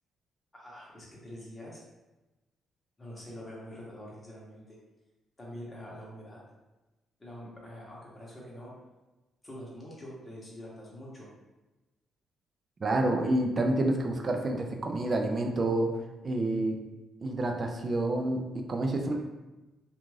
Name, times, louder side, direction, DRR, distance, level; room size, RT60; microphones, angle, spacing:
voice 1, 0.5-1.8 3.0-4.8 5.4-6.4 7.2-8.7 9.4-11.3, equal, 15° left, -5 dB, 1.0 m, -45 dB
voice 2, 12.8-15.9 16.2-16.8 17.2-19.1, right 2 dB, 35° right, 3 dB, 0.4 m, -28 dB
2.4 x 2.4 x 3.1 m, 1.1 s
cardioid pair, 90°, 0 cm